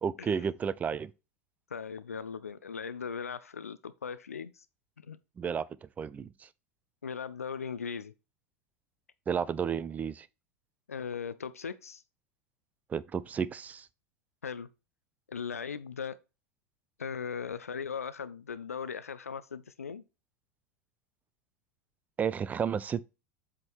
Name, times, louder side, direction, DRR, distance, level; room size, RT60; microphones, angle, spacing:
voice 1, 0.0-1.1 5.4-5.6 6.0-6.5 9.3-10.3 12.9-13.9 22.2-23.1, right 7 dB, 20° right, 0.4 m, -32 dB
voice 2, 1.7-4.7 5.0-5.2 7.0-8.1 10.9-12.0 14.4-14.7 15.3-16.2 17.0-20.0, left 6 dB, 80° left, 0.4 m, -38 dB
7.8 x 3.7 x 4.5 m
figure-of-eight pair, 85°, 8 cm